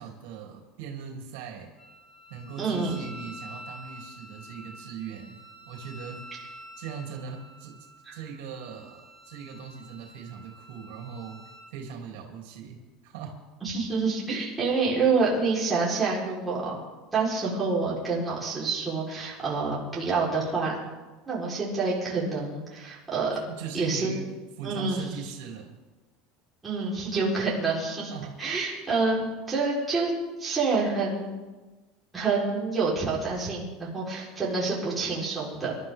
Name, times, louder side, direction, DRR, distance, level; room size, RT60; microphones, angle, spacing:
voice 1, 0.0-1.7 2.3-5.3 5.7-6.2 6.8-11.4 11.7-12.8 13.0-13.3 23.3-25.7 28.1-28.4, right 6 dB, 75° right, 1 dB, 3.3 m, -40 dB
Wind instrument woodwind instrument, 1.8-11.7, equal, 25° left, 2.6 m, -48 dB
voice 2, 2.6-3.0 8.1-8.2 13.6-16.8 17.1-20.8 21.3-23.3 23.7-24.1 24.6-25.0 26.6-28.1 28.4-30.1 30.4-31.3 32.1-35.7, right 4 dB, 10° right, -7 dB, 4.5 m, -27 dB
26.5 x 12.5 x 3.8 m, 1.2 s
cardioid pair, 165°, 0 cm